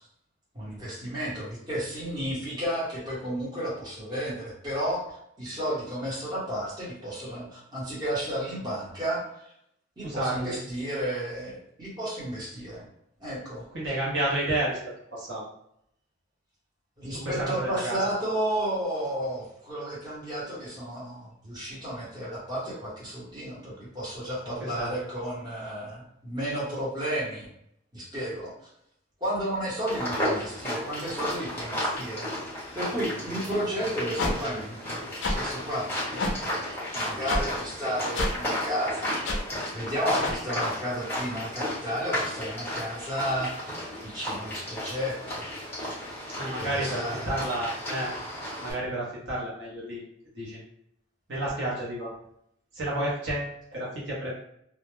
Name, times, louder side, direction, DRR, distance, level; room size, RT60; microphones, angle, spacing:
voice 1, 0.5-9.5 10.0-12.8 13.2-14.0 17.0-27.5 27.9-28.5 29.2-32.3 32.7-36.7 36.9-39.1 39.5-43.7 44.0-45.5 46.6-47.6, equal, 20° right, -8 dB, 0.9 m, -33 dB
voice 2, 10.0-10.6 13.7-14.8 15.1-15.4 17.2-18.1 24.6-24.9 46.4-48.1 48.6-50.0 50.4-50.6 51.3-52.1 52.7-54.3, right 1 dB, 55° right, -6 dB, 0.8 m, -30 dB
sound 1, 29.9-48.7, equal, 10° left, 1.0 m, -33 dB
sound 2, 34.2-34.3 35.2-35.4 36.2-36.3 37.3-37.4 38.1-38.3 39.2-39.4 40.2-40.4, left 2 dB, 55° left, 0.4 m, -26 dB
2.2 x 2.1 x 3.0 m, 0.73 s
head